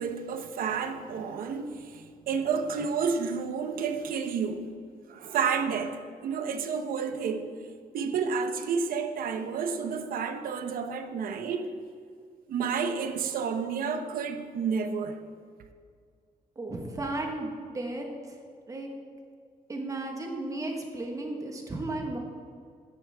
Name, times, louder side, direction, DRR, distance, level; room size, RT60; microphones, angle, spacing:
voice 1, 0.0-4.7 5.1-7.5 7.9-11.7 12.5-15.2, right 6 dB, 75° right, 0.9 m, -30 dB
voice 2, 16.6-18.0 18.7-18.9 19.7-22.2, right 2 dB, 20° right, 1.3 m, -34 dB
13.5 x 10.5 x 3.5 m
wide cardioid pair, 170°, 15 cm